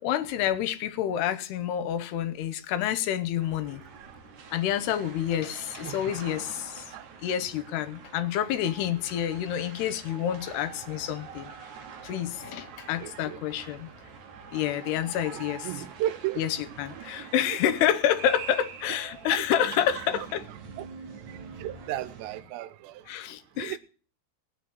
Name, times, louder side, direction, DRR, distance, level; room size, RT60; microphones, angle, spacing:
voice 1, 0.0-3.8 4.5-6.8 7.2-11.5 12.0-13.9 14.5-15.7 16.4-20.4 23.1-23.8, left 10 dB, 80° left, 2.9 m, -28 dB
sound 1, 3.4-22.4, right 6 dB, 55° right, 2.4 m, -45 dB
voice 2, 5.8-6.1 6.9-7.4 13.0-13.4 15.3-16.4 17.0-17.6 19.7-19.8 20.1-20.3 20.8-20.9 21.3-23.0 23.6-23.8, right 13 dB, 90° right, 3.0 m, -35 dB
19.0 x 6.5 x 9.4 m
omnidirectional pair, 4.8 m